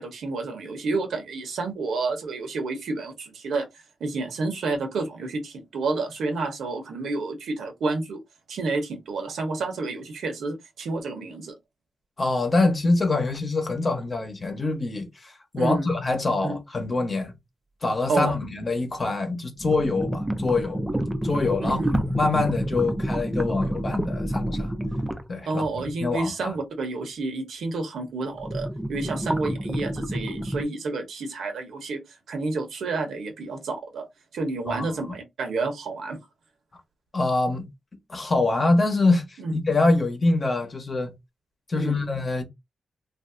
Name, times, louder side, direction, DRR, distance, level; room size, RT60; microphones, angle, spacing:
voice 1, 0.0-3.7 4.0-8.2 8.5-11.5 15.6-15.9 16.4-16.6 18.1-18.3 21.6-22.0 25.5-34.1 34.3-36.2 39.4-39.5 41.7-42.1, right 3 dB, 85° right, 0.9 m, -30 dB
voice 2, 12.2-17.3 17.8-20.8 21.2-24.7 25.3-26.6 34.7-34.8 37.1-37.6 38.1-41.1 41.7-42.4, left 3 dB, 30° left, 1.0 m, -25 dB
sound 1, 14.1-14.2 18.9-19.0 19.6-25.3 28.3-30.6, right 1 dB, 5° right, 0.4 m, -28 dB
3.1 x 2.6 x 2.5 m
wide cardioid pair, 115°, 0 cm